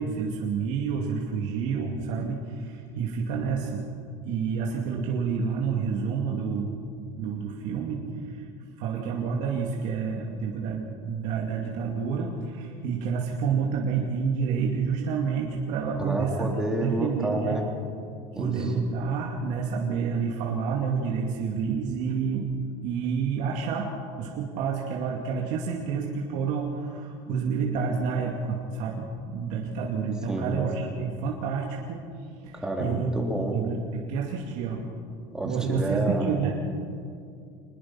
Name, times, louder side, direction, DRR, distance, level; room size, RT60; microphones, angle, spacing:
voice 1, 0.0-3.8 4.2-6.7 7.1-8.5 8.8-16.5 16.8-17.6 18.3-22.5 22.8-23.9 24.2-33.1 33.5-35.0 35.4-36.6, right 5 dB, 60° right, -1 dB, 2.5 m, -29 dB
voice 2, 16.0-17.6 18.3-18.7 23.0-23.2 30.3-30.5 32.5-33.5 35.3-36.3, right 1 dB, 5° right, 0 dB, 3.4 m, -29 dB
25.0 x 21.0 x 5.9 m, 2.4 s
cardioid pair, 145°, 14 cm